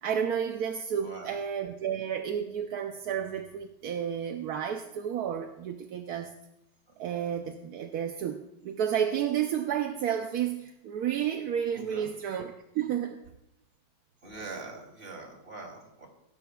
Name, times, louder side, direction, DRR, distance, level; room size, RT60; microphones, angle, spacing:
voice 1, 0.0-6.4 7.0-13.2, right 9 dB, 65° right, 5 dB, 1.0 m, -31 dB
voice 2, 1.0-1.3 11.7-12.1 14.2-16.1, right 3 dB, 30° right, 0 dB, 3.3 m, -43 dB
17.5 x 16.0 x 2.3 m, 0.86 s
omnidirectional pair, 2.1 m